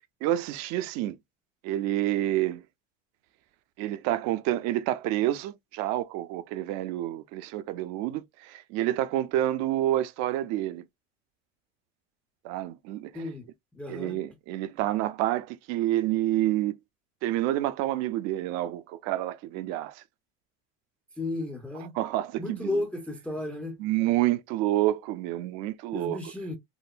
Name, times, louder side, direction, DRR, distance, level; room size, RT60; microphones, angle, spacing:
voice 1, 0.2-1.2 1.6-2.6 3.8-10.8 12.4-13.1 13.9-16.7 17.2-20.0 22.0-22.8 23.8-26.2, right 14 dB, 60° right, 0.5 m, -28 dB
voice 2, 13.1-14.2 21.2-21.9 22.4-23.8 25.9-26.6, left 2 dB, 5° left, 0.5 m, -34 dB
3.7 x 2.1 x 2.5 m
supercardioid pair, 120°, 31 cm